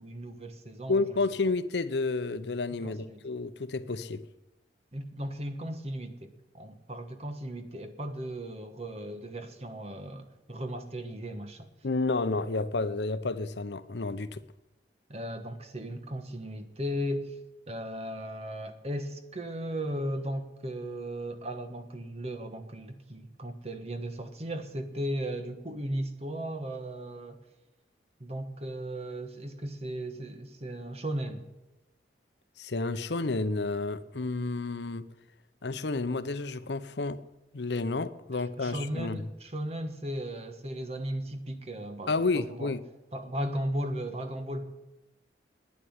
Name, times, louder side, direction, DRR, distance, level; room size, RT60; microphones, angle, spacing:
voice 1, 0.0-1.2 2.7-3.2 4.9-11.7 15.1-17.4 17.7-27.4 28.2-31.5 38.3-42.7 43.1-44.6, right 1 dB, 35° right, 1.3 m, -36 dB
voice 2, 0.9-4.3 11.8-14.4 32.6-35.0 35.6-37.2 37.5-39.2 42.1-42.8, left 3 dB, 75° left, 0.8 m, -30 dB
11.0 x 9.8 x 9.7 m
head